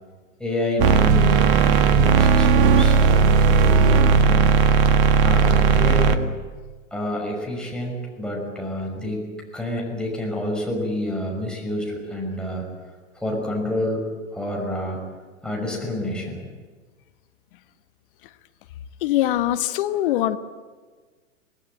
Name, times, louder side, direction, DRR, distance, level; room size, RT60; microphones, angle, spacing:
voice 1, 0.4-4.6 5.2-6.2 6.9-9.3 9.5-12.7 13.1-14.0 14.3-15.0 15.4-16.5, left 1 dB, ahead, -2 dB, 5.8 m, -28 dB
sound 1, 0.8-6.2, right 5 dB, 40° right, 1.7 m, -16 dB
voice 2, 19.0-20.4, left 13 dB, 40° left, 11 dB, 1.2 m, -22 dB
26.5 x 19.0 x 9.0 m, 1.4 s
figure-of-eight pair, 105°, 40 cm